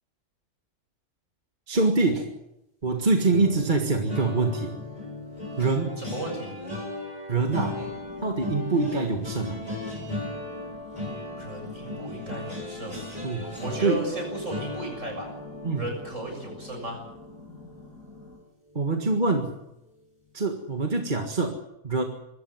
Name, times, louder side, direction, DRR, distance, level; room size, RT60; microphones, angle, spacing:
voice 1, 1.7-2.3 2.8-4.8 5.6-6.0 7.3-7.8 8.2-9.6 13.2-13.5 13.8-14.1 15.6-15.9 18.8-19.6 20.3-21.6 21.8-22.0, right 3 dB, 30° right, 4 dB, 1.9 m, -24 dB
sound 1, 3.2-18.4 18.8-19.0 19.3-19.5, left 2 dB, 25° left, 7.7 m, -37 dB
voice 2, 6.0-6.6 7.8-7.9 11.4-13.0 13.6-15.3 15.7-17.0, right 1 dB, 55° right, 2 dB, 7.6 m, -35 dB
sound 2, 7.6-18.4, left 2 dB, 60° left, 6.2 m, -48 dB
23.5 x 14.0 x 9.4 m, 0.89 s
omnidirectional pair, 1.6 m